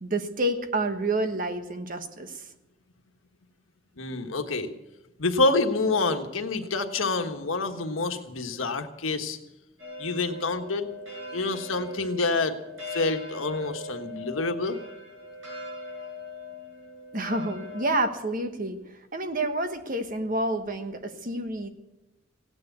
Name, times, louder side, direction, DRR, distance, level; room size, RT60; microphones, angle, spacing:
voice 1, 0.0-2.5 17.1-18.8 19.1-21.7, right 1 dB, 45° right, 7 dB, 1.3 m, -29 dB
voice 2, 4.0-4.7 5.2-9.4 10.0-10.9 11.3-12.5 12.9-14.8, left 3 dB, 90° left, 6 dB, 1.4 m, -27 dB
sound 1, 9.8-18.0, left 2 dB, 80° right, 6.1 m, -40 dB
16.5 x 9.8 x 8.2 m, 0.99 s
head